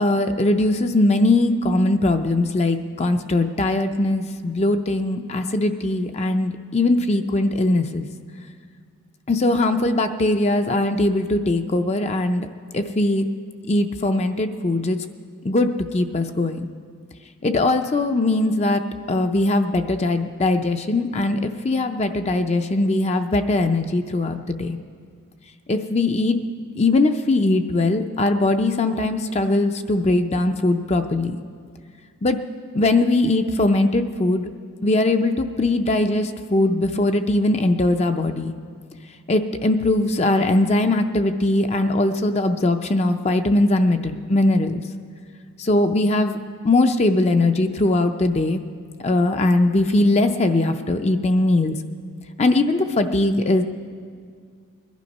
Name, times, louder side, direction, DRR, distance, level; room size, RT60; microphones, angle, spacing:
voice 1, 0.0-8.1 9.3-12.5 12.7-13.3 13.7-15.0 15.4-16.7 17.4-18.8 19.1-24.8 25.7-26.4 26.8-31.4 32.2-32.4 32.7-34.4 34.8-38.5 39.3-44.8 45.6-46.4 46.6-48.6 49.0-51.8 52.4-53.6, left 2 dB, 30° left, 7 dB, 0.5 m, -20 dB
21.0 x 11.5 x 5.3 m, 2.1 s
head